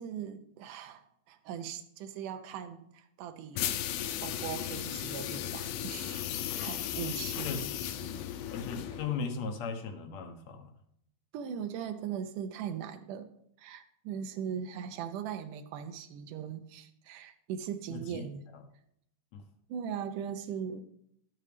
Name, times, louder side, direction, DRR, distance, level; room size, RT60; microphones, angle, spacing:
voice 1, 0.0-6.3 6.6-8.2 8.9-9.0 11.3-13.3 13.6-18.5 19.7-20.9, right 8 dB, 75° right, 7 dB, 2.0 m, -40 dB
sound 1, 3.5-9.2, left 11 dB, 90° left, 1.8 m, -36 dB
voice 2, 7.4-8.1 8.5-10.7 17.9-18.3 18.5-18.6 19.3-19.4, left 5 dB, 75° left, 4 dB, 1.6 m, -38 dB
12.0 x 8.7 x 3.3 m, 0.72 s
omnidirectional pair, 4.5 m